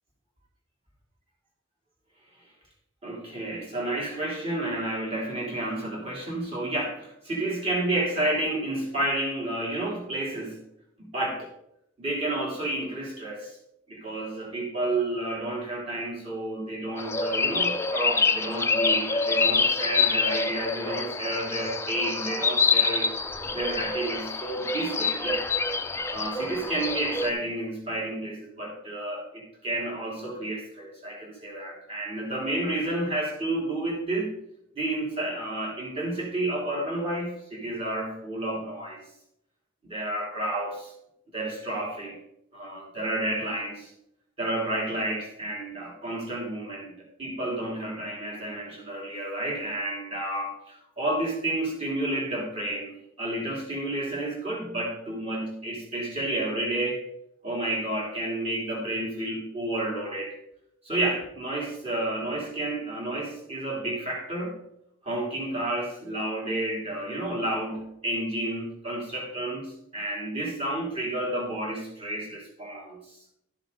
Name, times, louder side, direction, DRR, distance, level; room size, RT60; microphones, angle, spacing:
voice 1, 3.0-10.6 11.0-11.5 12.0-13.5 13.9-23.1 23.5-25.4 26.1-34.4 34.7-39.0 39.8-40.9 41.3-42.2 42.5-43.9 44.4-57.0 57.4-60.3 60.8-64.6 65.0-73.0, right 1 dB, 30° right, -3 dB, 3.3 m, -31 dB
sound 1, 17.0-27.3, left 4 dB, 15° left, 0.5 m, -26 dB
13.0 x 7.2 x 4.0 m, 0.77 s
head